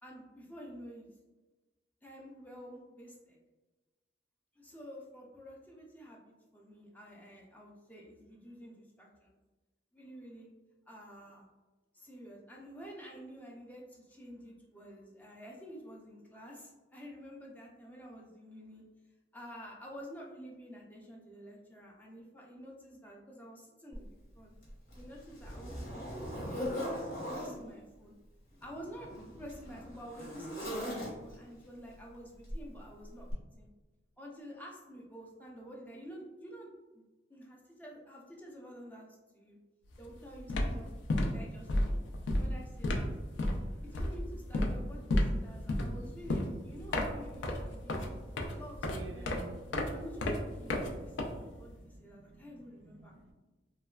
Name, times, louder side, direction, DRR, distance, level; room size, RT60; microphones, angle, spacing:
voice 1, 0.0-1.1 2.0-3.4 4.6-9.4 9.9-10.5 10.9-11.5 11.9-18.8 19.3-24.6 25.0-28.1 28.6-29.1 29.4-33.7 34.2-36.7 36.9-37.0 37.3-39.1 39.3-39.6 40.0-41.9 42.4-43.1 43.8-48.0 48.5-49.4 49.9-53.1, equal, 10° left, -2 dB, 0.3 m, -49 dB
Zipper (clothing), 23.9-24.0 24.6-27.6 28.5-31.5 32.5-32.7 33.3-33.4, equal, 70° left, 1.0 m, -40 dB
sound 1, 39.9-40.1 40.4-51.8, left 1 dB, 90° left, 0.4 m, -33 dB
voice 2, 45.8-50.1 50.4-53.3, right 3 dB, 80° right, 4 dB, 0.3 m, -54 dB
3.1 x 2.1 x 2.2 m, 1.2 s
head